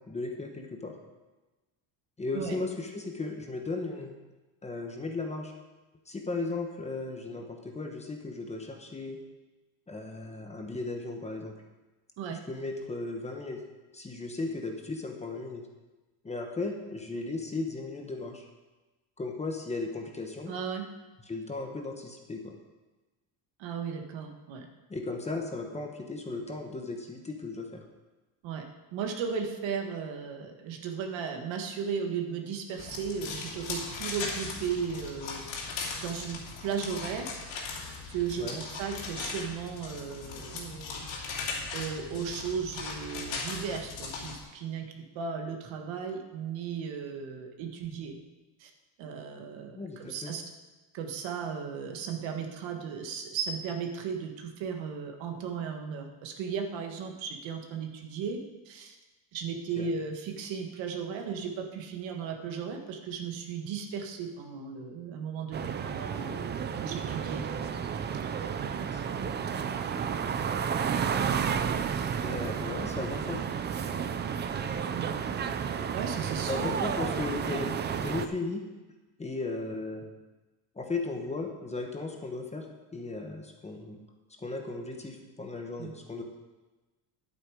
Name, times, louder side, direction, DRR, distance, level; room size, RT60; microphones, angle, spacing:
voice 1, 0.1-0.9 2.2-4.2 4.6-5.5 6.1-9.2 9.9-11.5 12.3-13.6 13.9-15.6 16.2-18.4 19.2-20.5 21.3-22.5 24.9-27.8 38.4-38.6 49.7-50.3 59.8-59.9 68.9-69.0 72.2-73.4 76.5-78.6 79.2-80.1 80.7-82.7 82.9-84.0 84.4-86.2, left 3 dB, 15° left, 3 dB, 1.0 m, -36 dB
voice 2, 20.5-20.9 23.6-24.7 28.4-28.6 28.9-35.4 36.0-37.3 38.1-41.1 41.7-48.1 48.6-48.7 49.0-50.4 50.9-58.4 58.7-59.0 59.3-67.4 71.4-71.5 71.9-72.1 74.9-75.1 75.9-76.7 85.8-85.9, right 6 dB, 75° right, 4 dB, 1.7 m, -36 dB
sound 1, 32.8-44.4, left 4 dB, 75° left, 2.9 m, -38 dB
sound 2, 65.5-78.3, right 7 dB, 25° right, 0.4 m, -31 dB
11.0 x 8.7 x 5.0 m, 1.2 s
cardioid pair, 160°, 46 cm